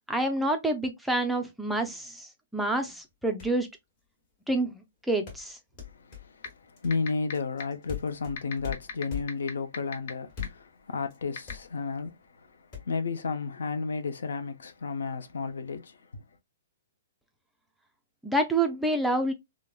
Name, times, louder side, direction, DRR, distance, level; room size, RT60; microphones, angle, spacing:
voice 1, 0.1-3.7 4.5-5.6 18.2-19.3, right 1 dB, ahead, 0.3 m, -28 dB
sound 1, 3.1-3.2 3.4-3.7 5.3-9.6 10.3-10.8 11.1-11.2 11.5-12.1 12.7-12.8, left 9 dB, 30° left, 1.1 m, -40 dB
voice 2, 5.9-16.2, left 4 dB, 90° left, 0.6 m, -33 dB
sound 2, 6.4-6.5 6.9-7.3 7.6-7.7 8.4-10.1 10.4-10.5 11.4-11.5, left 7 dB, 45° left, 0.7 m, -34 dB
3.4 x 2.0 x 2.3 m
hypercardioid pair, 170°, 0 cm